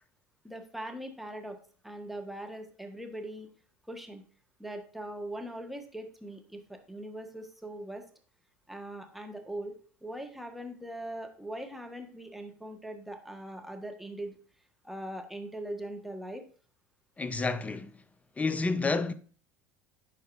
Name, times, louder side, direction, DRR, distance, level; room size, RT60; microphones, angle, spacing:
voice 1, 0.4-3.5 3.9-4.2 4.6-8.0 8.7-14.4 14.8-16.4, right 1 dB, ahead, 1.4 m, -41 dB
voice 2, 17.2-17.9 18.4-19.1, left 3 dB, 15° left, 0.7 m, -29 dB
11.0 x 4.6 x 2.6 m
hypercardioid pair, 80°, 8 cm